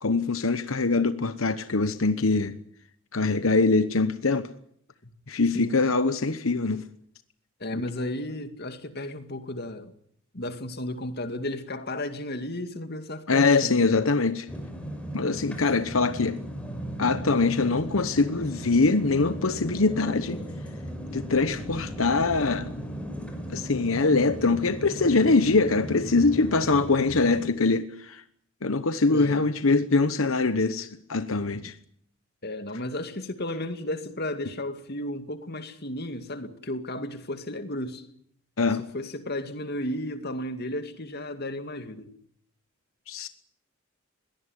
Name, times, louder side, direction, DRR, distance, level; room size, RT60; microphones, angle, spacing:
voice 1, 0.0-2.6 3.1-4.5 5.3-6.8 7.7-7.8 13.3-14.5 15.1-16.4 17.0-20.4 21.1-22.7 23.5-28.2 28.6-31.7 38.6-38.8 43.1-43.3, left 3 dB, 80° left, 1.1 m, -23 dB
voice 2, 7.6-9.9 10.3-14.0 29.1-29.5 32.4-38.1 38.9-42.1, left 1 dB, 50° left, 2.3 m, -34 dB
sound 1, 14.5-27.4, equal, 5° left, 5.2 m, -37 dB
22.0 x 18.5 x 9.9 m
head